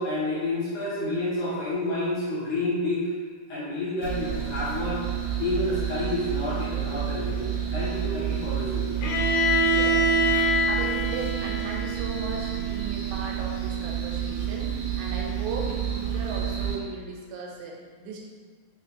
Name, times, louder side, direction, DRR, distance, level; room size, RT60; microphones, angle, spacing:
voice 1, 0.0-3.1 3.5-5.0 5.4-8.9, left 2 dB, 70° left, -10 dB, 2.1 m, -29 dB
sound 1, 4.0-16.8, right 9 dB, 60° right, 2.3 m, -30 dB
Bowed string instrument, 9.0-12.9, equal, 90° left, 2.4 m, -25 dB
voice 2, 9.7-10.1 10.6-18.2, right 3 dB, 90° right, -2 dB, 2.4 m, -37 dB
5.9 x 2.4 x 2.7 m, 1.6 s
omnidirectional pair, 4.2 m